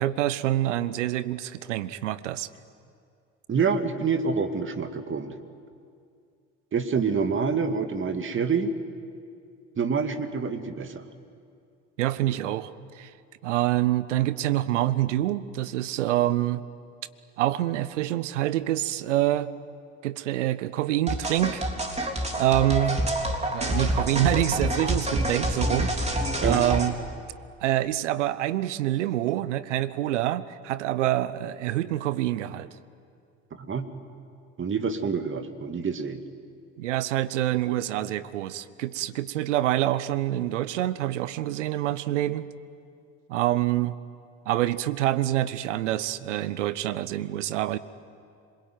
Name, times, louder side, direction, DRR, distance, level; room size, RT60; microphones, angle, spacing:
voice 1, 0.0-2.5 12.0-13.1 13.4-16.6 17.4-19.5 20.0-21.6 22.4-23.0 23.5-27.0 27.6-32.7 36.8-42.5 43.3-44.0 44.5-47.8, right 14 dB, 75° right, 16 dB, 0.9 m, -26 dB
voice 2, 3.5-5.4 6.7-8.7 9.8-11.0 26.4-26.6 33.5-33.9 34.6-36.2, right 5 dB, 35° right, 8 dB, 2.2 m, -27 dB
sound 1, 21.1-26.9, right 1 dB, 20° right, 3.6 m, -27 dB
26.5 x 22.0 x 9.3 m, 2.4 s
hypercardioid pair, 60°, 36 cm